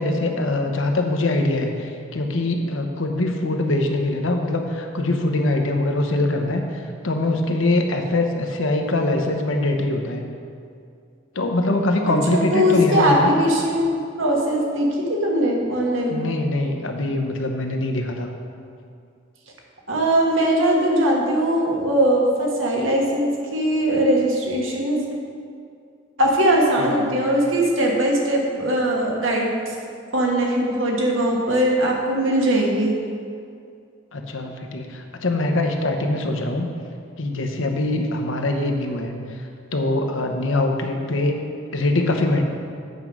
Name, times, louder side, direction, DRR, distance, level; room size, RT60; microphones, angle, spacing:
voice 1, 0.0-10.2 11.3-13.3 16.1-18.3 26.8-27.1 34.1-36.7 37.2-39.4 39.7-41.4 41.7-42.4, left 2 dB, 85° left, 4 dB, 0.9 m, -23 dB
voice 2, 12.0-16.2 19.9-25.1 26.2-29.7 30.1-32.9, right 1 dB, 85° right, -1 dB, 1.5 m, -20 dB
8.2 x 5.3 x 6.1 m, 2.4 s
head